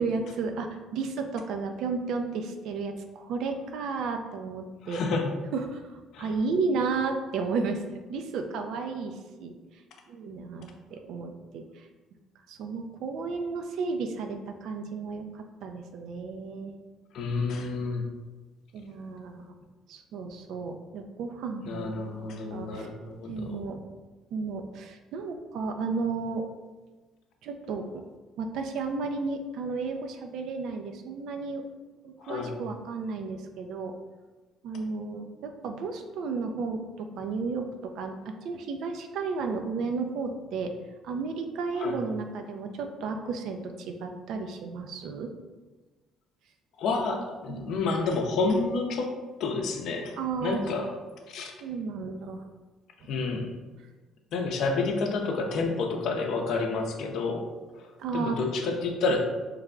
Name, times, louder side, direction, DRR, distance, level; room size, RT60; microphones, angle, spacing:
voice 1, 0.0-5.0 5.5-7.8 8.1-9.5 10.1-11.6 12.5-16.7 18.7-19.5 19.9-21.9 22.2-22.9 23.3-23.8 24.3-26.5 27.4-28.0 28.4-31.6 32.0-33.9 34.6-40.7 41.0-45.3 47.5-47.7 50.2-50.6 51.6-52.4 53.0-53.1 58.0-58.4 58.6-58.8, right 4 dB, 70° right, 5 dB, 0.4 m, -33 dB
voice 2, 4.8-5.3 6.1-6.3 17.1-18.0 21.6-23.6 32.2-32.6 41.8-42.0 46.8-50.1 50.4-50.9 51.3-51.5 53.1-53.5 54.3-57.4 57.7-59.2, left 3 dB, 70° left, 3 dB, 0.5 m, -29 dB
3.2 x 2.3 x 3.6 m, 1.3 s
supercardioid pair, 70°, 0 cm